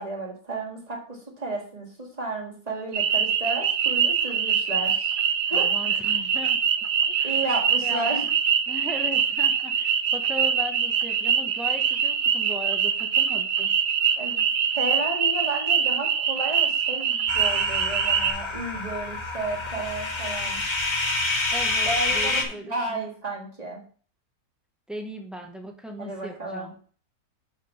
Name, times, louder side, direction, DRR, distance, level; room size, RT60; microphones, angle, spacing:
voice 1, 0.0-5.1 5.5-5.7 7.2-8.3 14.2-14.5 14.7-20.6 21.8-23.8 26.0-26.7, right 2 dB, 25° right, -1 dB, 1.8 m, -32 dB
sound 1, 2.9-18.3, right 7 dB, 65° right, 0.6 m, -24 dB
voice 2, 5.5-6.6 7.0-7.4 7.8-8.2 8.7-13.7 21.5-23.1 24.9-26.7, equal, ahead, 2 dB, 0.4 m, -38 dB
sound 2, 17.3-22.4, left 2 dB, 20° left, 0.8 m, -28 dB
5.5 x 4.8 x 5.7 m, 0.43 s
omnidirectional pair, 1.8 m